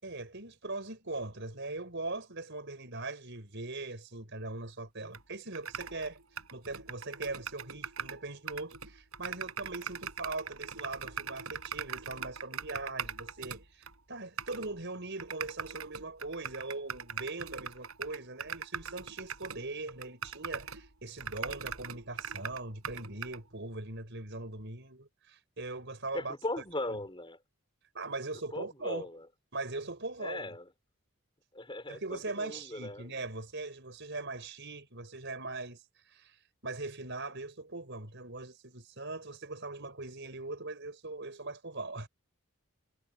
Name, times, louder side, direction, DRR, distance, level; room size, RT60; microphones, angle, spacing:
voice 1, 0.0-6.2 6.5-26.3 26.9-27.0 27.9-29.1 29.5-30.5 31.9-35.8 36.1-36.4 36.6-42.1, right 2 dB, 55° right, 5.8 m, -40 dB
sound 1, 5.1-5.2 5.5-8.2 8.5-13.9 14.4-14.7 15.2-20.9 21.2-23.4, right 7 dB, 75° right, 6.1 m, -40 dB
voice 2, 26.1-27.4 28.5-29.3 30.2-30.7 31.5-33.1, left 1 dB, 20° left, 4.7 m, -38 dB
head